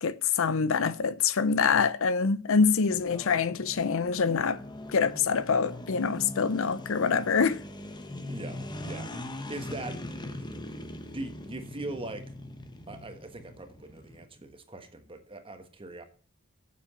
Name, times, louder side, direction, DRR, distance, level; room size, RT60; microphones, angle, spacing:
voice 1, 0.0-4.6 4.9-7.6, left 5 dB, 70° left, 0.6 m, -25 dB
sound 1, 2.9-14.2, left 1 dB, 20° left, 1.1 m, -41 dB
voice 2, 8.3-9.1 9.5-12.2 12.9-16.0, right 2 dB, 25° right, 1.5 m, -41 dB
8.4 x 7.1 x 7.0 m
head